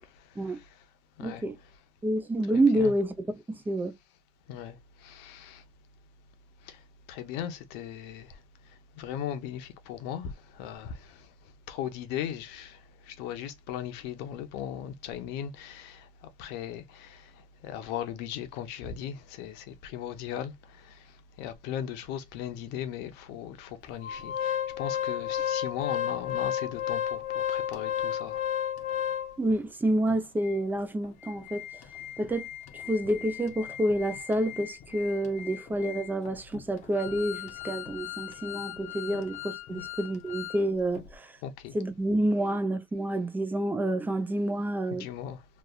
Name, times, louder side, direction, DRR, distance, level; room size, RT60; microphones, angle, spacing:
voice 1, 0.0-0.9 1.2-1.8 2.5-2.9 4.5-5.7 6.6-28.5 39.7-39.9 40.9-41.0 41.4-41.8 44.9-45.6, left 9 dB, 80° left, 0.8 m, -38 dB
voice 2, 1.2-1.5 2.0-3.1 3.5-3.9 29.4-31.6 32.2-32.5 32.9-41.3 41.7-45.0, right 1 dB, 10° right, 0.5 m, -28 dB
Organ, 24.0-29.6 30.1-30.2 30.4-30.6 31.0-40.6 40.9-41.1, left 10 dB, 45° left, 0.6 m, -34 dB
3.2 x 2.5 x 2.2 m
cardioid pair, 150°, 17 cm